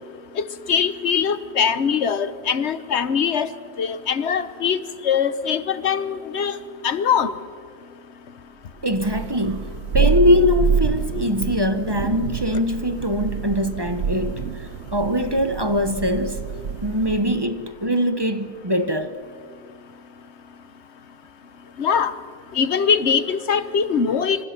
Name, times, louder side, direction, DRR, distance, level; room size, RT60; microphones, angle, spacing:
voice 1, 0.7-3.5 3.8-4.8 5.0-6.6 6.8-7.3 21.8-22.1 22.5-24.4, left 7 dB, 85° left, 1.3 m, -22 dB
voice 2, 8.8-16.5 16.8-19.1, equal, 25° right, 1.1 m, -22 dB
Thunder, 8.9-17.4, right 5 dB, 70° right, 1.1 m, -26 dB
27.0 x 26.0 x 6.0 m
omnidirectional pair, 1.1 m